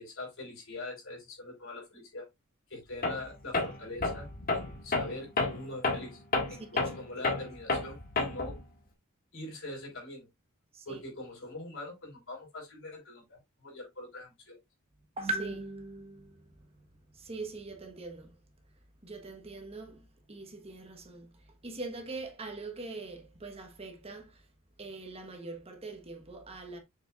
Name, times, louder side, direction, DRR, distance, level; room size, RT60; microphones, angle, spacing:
voice 1, 0.0-2.3 2.7-6.2 6.5-8.5 9.3-10.3 10.8-14.6, left 2 dB, 65° left, 4.6 m, -43 dB
Tools, 3.0-3.3 3.5-8.6, left 3 dB, 40° left, 1.7 m, -31 dB
voice 2, 6.5-6.9 10.7-11.0 15.2-18.3 19.0-24.5 24.8-26.8, right 3 dB, 30° right, 1.2 m, -42 dB
6.9 x 6.2 x 2.4 m
head